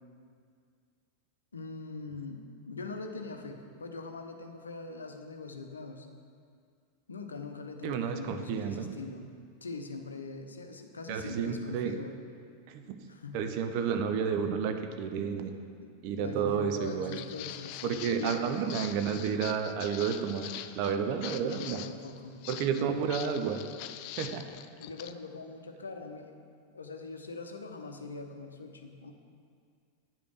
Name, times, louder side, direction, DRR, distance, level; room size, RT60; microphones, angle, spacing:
voice 1, 1.5-6.1 7.1-9.3 9.6-12.1 13.1-13.7 15.8-18.5 21.3-22.4 24.8-26.3 26.7-29.1, left 3 dB, 75° left, 5 dB, 0.7 m, -42 dB
voice 2, 7.8-8.9 11.1-11.9 12.7-13.0 13.3-15.5 16.0-17.2 17.8-21.8 22.5-23.6 24.2-24.4, right 7 dB, 45° right, 7 dB, 0.6 m, -31 dB
Walk footsteps, 16.8-25.1, left 12 dB, 45° left, 0.3 m, -44 dB
9.0 x 5.1 x 6.4 m, 2.2 s
figure-of-eight pair, 90°, 0 cm